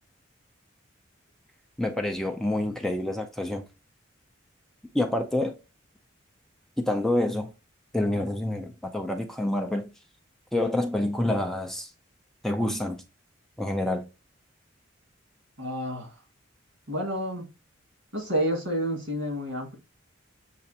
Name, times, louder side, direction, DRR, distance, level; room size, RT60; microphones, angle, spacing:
voice 1, 1.8-3.6 4.9-5.5 6.8-7.5 7.9-9.9 10.5-11.9 12.4-13.0 13.6-14.1, left 1 dB, ahead, 0.4 m, -27 dB
voice 2, 15.6-16.2 16.9-17.5 18.1-19.8, equal, 80° right, 1.8 m, -29 dB
6.7 x 2.5 x 2.7 m
head